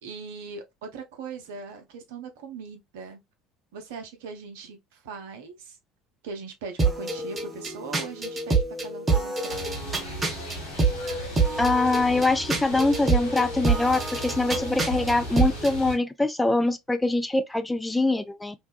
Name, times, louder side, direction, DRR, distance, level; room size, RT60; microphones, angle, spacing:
voice 1, 0.0-3.2 3.7-5.8 6.2-9.9, right 4 dB, 70° right, 0.6 m, -40 dB
sound 1, 6.8-15.8, right 4 dB, 25° right, 0.8 m, -27 dB
sound 2, 9.5-16.0, equal, 65° left, 1.0 m, -36 dB
voice 2, 11.6-18.5, left 2 dB, 10° left, 0.4 m, -24 dB
2.6 x 2.2 x 2.3 m
hypercardioid pair, 65°, 0 cm